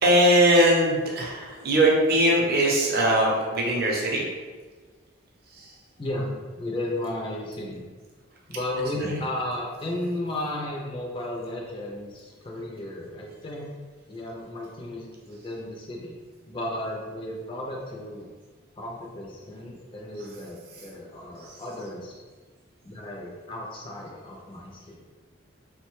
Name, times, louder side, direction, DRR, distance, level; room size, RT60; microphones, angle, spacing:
voice 1, 0.0-4.2 5.5-5.8 9.0-9.2 20.2-20.3 20.7-20.9 21.4-21.6, right 1 dB, 50° right, -2 dB, 0.6 m, -21 dB
voice 2, 6.0-7.8 8.5-13.7 14.1-16.2 16.5-18.3 18.8-22.2 22.8-25.0, left 1 dB, 25° left, -3 dB, 0.4 m, -34 dB
3.0 x 2.1 x 3.0 m, 1.4 s
head